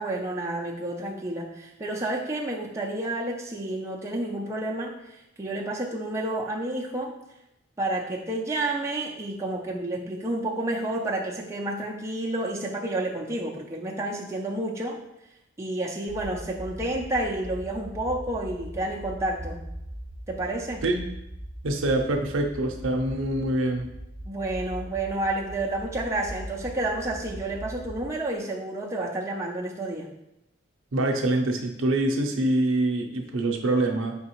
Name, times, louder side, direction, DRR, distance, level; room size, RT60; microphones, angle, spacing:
voice 1, 0.0-7.1 7.8-15.0 15.6-19.6 20.3-20.8 24.3-30.1, right 1 dB, 15° right, -2 dB, 0.4 m, -30 dB
sound 1, 16.1-28.1, right 1 dB, 50° left, 1.4 m, -40 dB
voice 2, 21.6-23.9 30.9-34.2, right 2 dB, 80° right, 4 dB, 0.6 m, -25 dB
4.7 x 3.5 x 3.0 m, 0.86 s
head